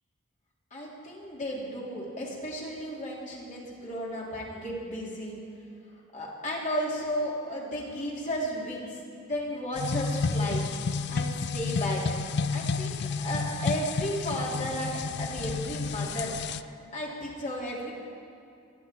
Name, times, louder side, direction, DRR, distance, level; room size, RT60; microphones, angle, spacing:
voice 1, 0.7-5.4 6.1-10.6 11.1-12.0 12.5-16.3 16.9-17.9, equal, 40° left, -4 dB, 3.6 m, -34 dB
sound 1, 9.8-16.6, left 4 dB, 55° left, 0.4 m, -31 dB
26.0 x 11.0 x 4.6 m, 2.6 s
head